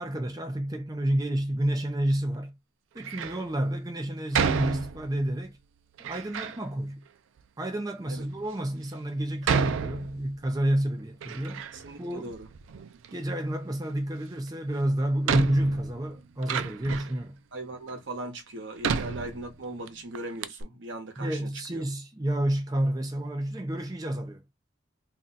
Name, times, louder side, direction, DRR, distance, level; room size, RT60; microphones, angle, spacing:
voice 1, 0.0-2.5 2.9-5.6 6.0-7.0 7.6-11.6 12.0-12.3 13.1-17.4 21.2-24.4, right 1 dB, 20° right, 0.5 m, -29 dB
Door, 3.0-3.4 4.3-5.3 6.0-6.6 7.4-7.5 8.2-8.3 9.4-10.6 10.9-12.0 12.3-13.1 14.5-14.6 15.2-17.2 17.9-18.0 18.8-19.9 20.1-20.2 20.4-20.6, right 6 dB, 85° right, 0.4 m, -30 dB
voice 2, 11.7-12.5 17.5-21.8, right 2 dB, 70° right, 0.9 m, -39 dB
2.6 x 2.2 x 3.9 m
head